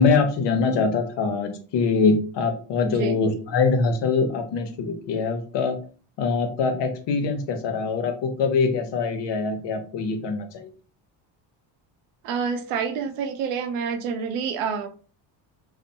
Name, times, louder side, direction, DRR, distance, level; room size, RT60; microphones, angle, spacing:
voice 1, 0.0-5.8 6.2-10.7, left 4 dB, 55° left, 6 dB, 0.8 m, -23 dB
voice 2, 2.8-3.2 12.2-14.9, right 6 dB, 85° right, 7 dB, 0.7 m, -28 dB
2.8 x 2.1 x 2.7 m, 0.38 s
supercardioid pair, 90°, 49 cm